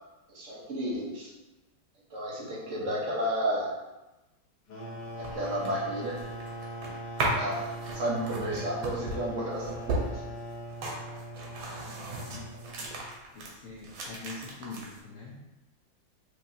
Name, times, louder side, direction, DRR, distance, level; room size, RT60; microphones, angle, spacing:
voice 1, 0.3-1.3 2.1-3.8 5.2-6.2 7.3-10.2, equal, 50° right, -5 dB, 1.1 m, -32 dB
sound 1, 4.7-13.2, right 1 dB, 65° left, 1.3 m, -41 dB
sound 2, 5.0-13.5 13.8-15.0, right 2 dB, 90° right, 1.7 m, -36 dB
voice 2, 11.8-12.8 13.3-15.5, left 3 dB, 80° left, -5 dB, 0.7 m, -45 dB
4.8 x 2.8 x 2.7 m, 1.0 s
omnidirectional pair, 2.2 m